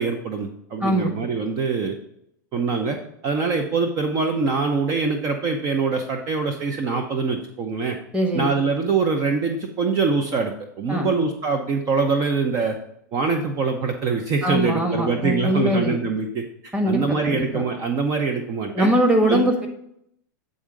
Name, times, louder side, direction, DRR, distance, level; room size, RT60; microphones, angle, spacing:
voice 1, 0.0-2.0 2.5-3.0 3.2-8.0 8.3-12.8 13.1-18.9 19.3-19.5, right 4 dB, 40° right, 4 dB, 0.8 m, -24 dB
voice 2, 0.8-1.1 8.1-8.5 10.9-11.1 14.4-16.0 16.7-17.6 18.7-19.7, equal, 10° right, 3 dB, 1.3 m, -21 dB
8.5 x 3.8 x 5.1 m, 0.74 s
hypercardioid pair, 120°, 10 cm